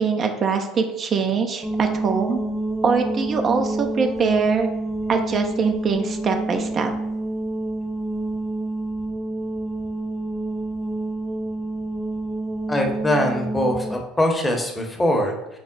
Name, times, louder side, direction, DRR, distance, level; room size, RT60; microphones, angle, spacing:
voice 1, 0.0-2.4 2.8-4.7 5.1-6.9, right 5 dB, 40° right, 4 dB, 0.4 m, -22 dB
sound 1, 1.6-14.0, right 2 dB, 20° right, 0.8 m, -28 dB
voice 2, 12.7-15.6, left 1 dB, 15° left, 2 dB, 0.8 m, -22 dB
4.6 x 2.0 x 3.8 m, 0.96 s
hypercardioid pair, 80°, 0 cm